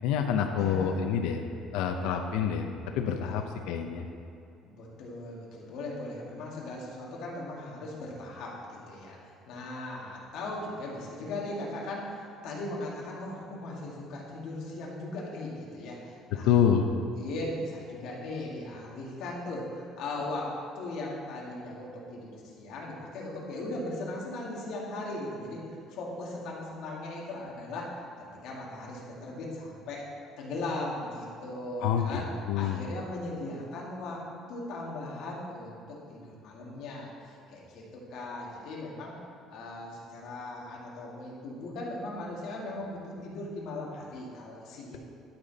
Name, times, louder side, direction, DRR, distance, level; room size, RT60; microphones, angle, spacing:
voice 1, 0.0-1.4 1.7-4.1 16.5-16.9 31.8-32.8, left 8 dB, 85° left, 5 dB, 0.6 m, -27 dB
voice 2, 0.6-1.0 4.7-9.2 9.5-16.8 17.1-28.0 28.4-30.1 30.4-32.3 32.5-34.2 34.5-39.1 39.5-45.0, left 2 dB, 55° left, -3 dB, 1.8 m, -38 dB
12.0 x 5.7 x 4.0 m, 2.6 s
cardioid pair, 175°, 0 cm